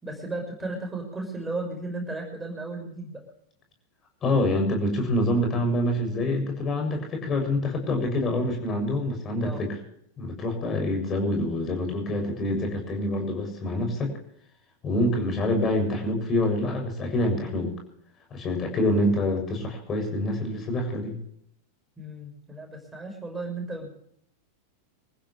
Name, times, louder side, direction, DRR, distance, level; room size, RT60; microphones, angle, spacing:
voice 1, 0.0-3.2 9.4-9.6 22.0-23.9, right 2 dB, 10° right, 2 dB, 6.0 m, -35 dB
voice 2, 4.2-9.8 10.2-14.1 14.8-17.7 18.3-21.2, left 1 dB, 25° left, 4 dB, 7.2 m, -26 dB
26.0 x 15.0 x 3.3 m, 0.69 s
figure-of-eight pair, 90°, 0 cm